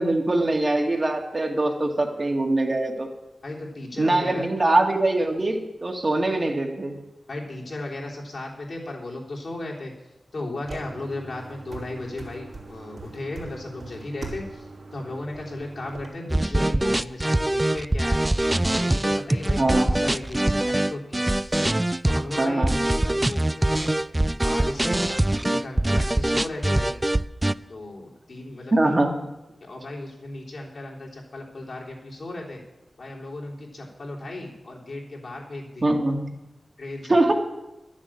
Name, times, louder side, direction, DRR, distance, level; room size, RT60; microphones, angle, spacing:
voice 1, 0.0-3.1 4.0-7.0 19.6-19.9 22.4-22.8 28.7-29.2 35.8-36.3 37.1-37.3, right 2 dB, 40° right, 2 dB, 1.9 m, -22 dB
voice 2, 3.4-4.5 7.3-9.9 10.3-18.2 18.5-21.3 22.0-23.9 24.4-27.0 27.7-29.1 29.6-32.6 33.0-35.9 36.8-37.3, left 2 dB, 65° left, -3 dB, 3.2 m, -36 dB
sound 1, 10.6-16.1, right 3 dB, 70° right, 3.1 m, -41 dB
sound 2, 16.3-27.5, right 1 dB, 15° right, 0.3 m, -23 dB
11.5 x 7.4 x 8.5 m, 0.95 s
wide cardioid pair, 75°, 0 cm